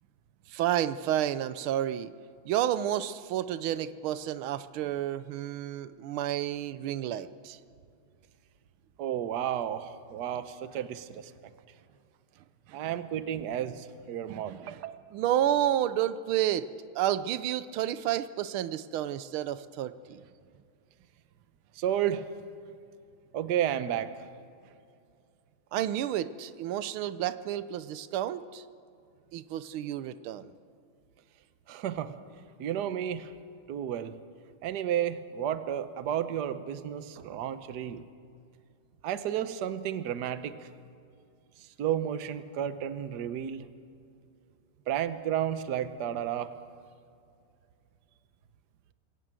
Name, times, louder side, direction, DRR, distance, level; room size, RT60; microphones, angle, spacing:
voice 1, 0.5-2.1 2.4-7.6 12.7-12.8 14.3-14.8 15.1-16.7 16.9-20.2 25.7-28.6 29.3-30.5 37.2-37.4, right 11 dB, 85° right, 14 dB, 1.6 m, -30 dB
voice 2, 9.0-11.3 12.7-15.0 21.7-22.3 23.3-24.3 31.7-32.1 32.6-33.3 33.7-34.2 34.6-38.1 39.0-40.7 41.6-43.7 44.9-46.5, right 10 dB, 60° right, 12 dB, 1.4 m, -32 dB
22.0 x 17.5 x 7.6 m, 2.4 s
omnidirectional pair, 2.3 m